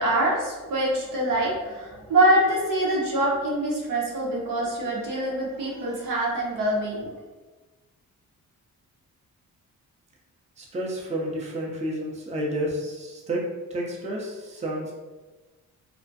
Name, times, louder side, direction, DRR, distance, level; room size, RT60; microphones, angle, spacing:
voice 1, 0.0-7.1, right 1 dB, 70° right, -4 dB, 0.8 m, -24 dB
voice 2, 10.6-13.4 13.7-14.9, right 1 dB, 20° right, -2 dB, 0.5 m, -30 dB
2.4 x 2.1 x 2.6 m, 1.2 s
cardioid pair, 70°, 34 cm